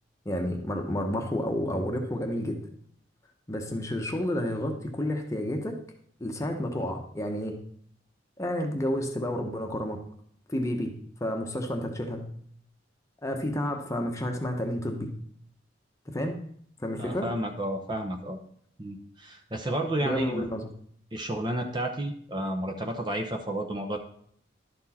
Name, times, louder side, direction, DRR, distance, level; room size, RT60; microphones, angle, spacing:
voice 1, 0.2-2.6 3.5-5.8 6.2-7.6 8.4-10.0 10.5-10.9 11.2-12.2 13.2-15.1 16.1-16.4 16.8-17.3 20.0-20.7, left 1 dB, 15° left, 3 dB, 0.9 m, -30 dB
voice 2, 17.0-18.4 18.8-20.5 21.1-24.0, right 1 dB, 25° right, 4 dB, 0.7 m, -31 dB
11.5 x 4.4 x 4.2 m, 0.63 s
head